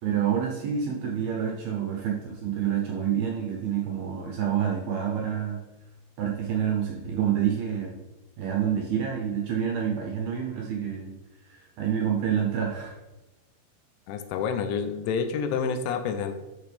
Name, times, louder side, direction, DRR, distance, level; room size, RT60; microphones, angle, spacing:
voice 1, 0.0-5.6 6.2-7.9 8.4-11.1 11.4-13.0, right 8 dB, 75° right, -1 dB, 2.3 m, -28 dB
voice 2, 14.1-16.3, left 6 dB, 80° left, 8 dB, 3.0 m, -28 dB
11.5 x 5.9 x 3.4 m, 1.1 s
omnidirectional pair, 5.4 m